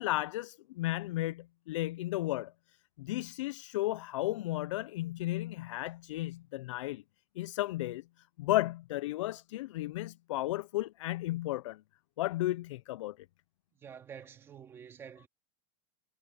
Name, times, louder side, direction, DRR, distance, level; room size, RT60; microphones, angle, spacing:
voice 1, 0.0-2.5 3.0-7.0 7.4-8.0 8.4-11.8 12.2-13.2, left 16 dB, 65° left, 0.5 m, -34 dB
voice 2, 13.7-15.3, right 7 dB, 15° right, 2.2 m, -48 dB
supercardioid pair, 180°, 17 cm